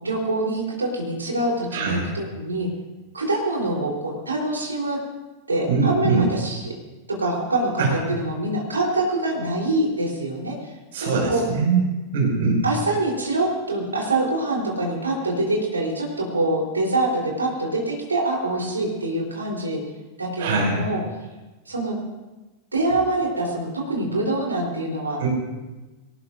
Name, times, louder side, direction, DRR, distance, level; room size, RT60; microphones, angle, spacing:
voice 1, 0.0-2.7 3.1-5.0 5.5-6.7 7.2-10.7 11.0-11.4 12.6-19.8 20.2-21.0 21.7-22.0 22.7-25.2, right 2 dB, 80° right, -1 dB, 3.9 m, -25 dB
voice 2, 1.7-2.0 5.7-6.3 7.8-7.9 10.9-11.8 12.1-12.6 20.4-20.8 25.2-25.3, right 4 dB, 55° right, -1 dB, 5.9 m, -21 dB
22.5 x 18.5 x 2.7 m, 1.2 s
figure-of-eight pair, 90°, 0 cm